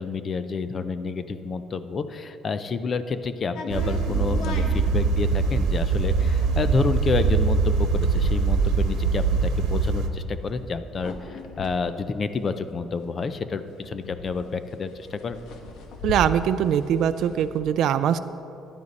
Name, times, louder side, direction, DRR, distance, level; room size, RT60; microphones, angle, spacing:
voice 1, 0.0-15.4, left 4 dB, 30° left, 11 dB, 0.5 m, -29 dB
sound 1, 3.6-13.1 13.4-13.5 13.7-17.6, left 3 dB, 75° left, 1.2 m, -39 dB
sound 2, 3.7-10.1, right 4 dB, 75° right, 1.1 m, -23 dB
voice 2, 16.0-18.2, right 9 dB, 60° right, 11 dB, 0.4 m, -22 dB
14.5 x 11.0 x 4.1 m, 2.8 s
cardioid pair, 175°, 0 cm